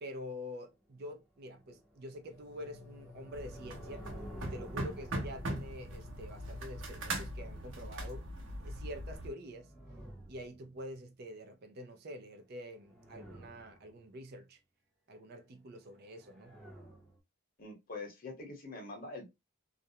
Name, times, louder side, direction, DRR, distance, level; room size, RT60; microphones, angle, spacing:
voice 1, 0.0-4.1 4.4-8.3 8.6-9.7 10.3-14.6 15.1-16.6, equal, 55° right, 0.5 m, -46 dB
sound 1, 1.4-7.1 9.1-11.0 12.5-14.0 15.9-17.2, right 1 dB, ahead, 0.7 m, -53 dB
sound 2, 2.3-7.6, left 5 dB, 90° left, 0.5 m, -57 dB
sound 3, 3.3-9.3, right 1 dB, 80° right, 0.8 m, -40 dB
voice 2, 17.6-19.4, left 3 dB, 50° left, 0.9 m, -44 dB
2.4 x 2.1 x 2.7 m
head